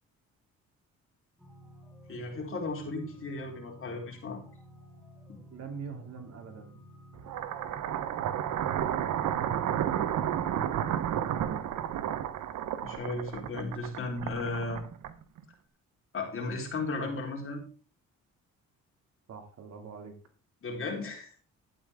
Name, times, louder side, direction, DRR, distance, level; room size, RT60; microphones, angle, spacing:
sound 1, 1.4-11.0, equal, ahead, 3.1 m, -53 dB
voice 1, 2.1-4.4 10.5-10.6 12.8-14.8 16.1-17.6 20.6-21.4, left 3 dB, 45° left, 1 dB, 4.0 m, -35 dB
voice 2, 5.5-6.8 19.3-20.2, right 6 dB, 55° right, 5 dB, 2.5 m, -43 dB
sound 2, 7.2-15.4, right 10 dB, 75° right, 1.0 m, -32 dB
12.0 x 9.3 x 3.6 m, 0.37 s
cardioid pair, 90°, 30 cm